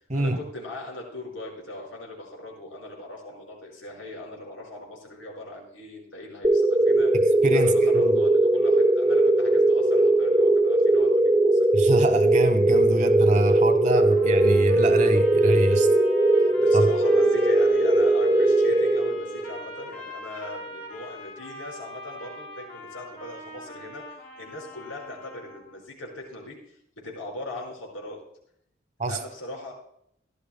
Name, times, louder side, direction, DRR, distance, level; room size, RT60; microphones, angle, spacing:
voice 1, 0.1-7.1 7.5-11.7 16.5-28.2 29.1-29.7, left 1 dB, 85° left, -1 dB, 5.1 m, -40 dB
sound 1, 6.4-19.6, right 2 dB, 20° right, 0.8 m, -20 dB
voice 2, 7.1-8.2 11.7-15.9 16.7-16.9 29.0-29.2, right 1 dB, 35° right, 8 dB, 1.1 m, -25 dB
sound 2, 14.1-25.8, left 1 dB, 55° left, 3.9 m, -42 dB
17.0 x 12.0 x 2.2 m, 0.73 s
head